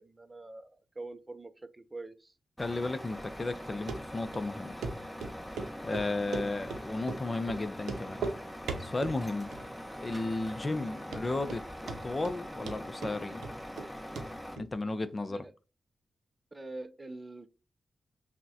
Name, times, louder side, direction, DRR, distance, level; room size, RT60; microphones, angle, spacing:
voice 1, 0.0-2.3 15.3-15.5 16.5-17.5, right 2 dB, 25° right, 0.4 m, -44 dB
voice 2, 2.6-4.7 5.8-8.2 8.8-9.5 10.0-11.6 12.0-13.4 14.6-15.4, left 2 dB, 35° left, 0.5 m, -34 dB
Truck, 2.6-14.6, equal, 5° left, 1.0 m, -43 dB
Run, 3.9-4.0 4.3-4.4 4.8-4.9 5.2-5.7 5.9-6.8 7.1-7.2 7.5-7.6 7.8-8.4 8.7-9.2 9.5-10.0 10.2-10.3 10.8-10.9 11.1-11.6 11.9-12.4 12.7-13.9 14.2-14.3 14.6-14.7, right 4 dB, 85° right, 0.6 m, -37 dB
5.8 x 2.1 x 2.7 m
cardioid pair, 55°, 0 cm